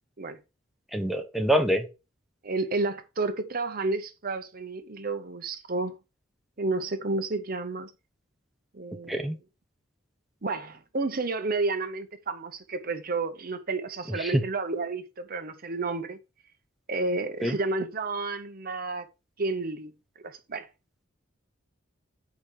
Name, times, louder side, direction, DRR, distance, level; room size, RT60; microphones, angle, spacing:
voice 1, 0.9-1.9 9.1-9.4 14.1-14.4 17.4-17.6, equal, ahead, 0.9 m, -25 dB
voice 2, 2.4-6.0 6.6-7.9 8.7-9.3 10.4-16.2 16.9-19.1 19.4-19.9 20.2-20.7, right 3 dB, 50° right, 0.9 m, -31 dB
7.4 x 5.1 x 4.6 m
head